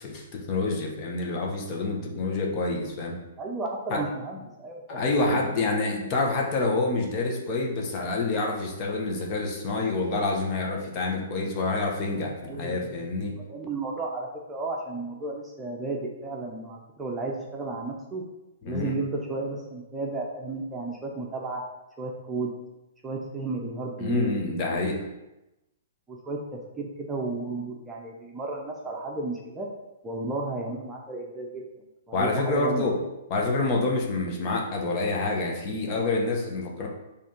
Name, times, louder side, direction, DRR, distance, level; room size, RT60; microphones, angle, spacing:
voice 1, 0.0-3.2 3.9-4.0 4.9-13.3 18.6-18.9 24.0-25.0 32.1-33.0 33.3-36.9, left 3 dB, 35° left, -1 dB, 1.4 m, -27 dB
voice 2, 3.4-5.0 12.4-18.2 18.7-21.6 22.0-22.5 23.0-24.8 26.1-29.7 30.0-31.6 32.1-32.9, right 3 dB, 15° right, -1 dB, 0.9 m, -33 dB
5.2 x 3.5 x 5.3 m, 0.96 s
figure-of-eight pair, 115°, 0 cm